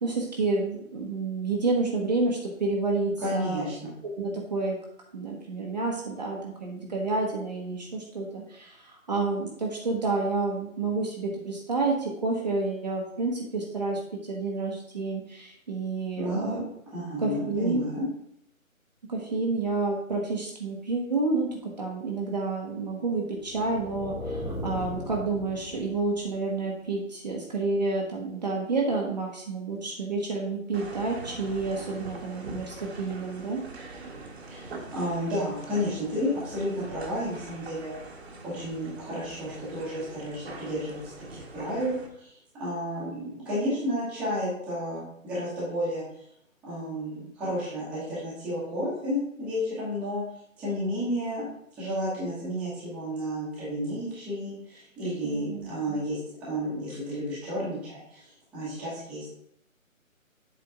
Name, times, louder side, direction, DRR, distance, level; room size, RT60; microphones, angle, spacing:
voice 1, 0.0-3.7 4.2-4.8 5.1-14.0 14.3-16.6 17.2-17.8 19.1-33.6 55.2-56.0, right 3 dB, 30° right, -1 dB, 0.9 m, -29 dB
voice 2, 3.2-3.9 16.1-16.6 16.9-18.0 34.5-37.9 38.4-41.0 41.3-46.0 46.6-50.2 50.6-51.5 51.8-58.2 58.5-59.3, equal, 5° right, -11 dB, 1.0 m, -32 dB
sound 1, 23.4-26.4, left 1 dB, 70° left, 2.6 m, -37 dB
sound 2, 30.7-42.1, right 3 dB, 50° right, 1.2 m, -43 dB
7.7 x 3.4 x 4.8 m, 0.71 s
figure-of-eight pair, 150°, 42 cm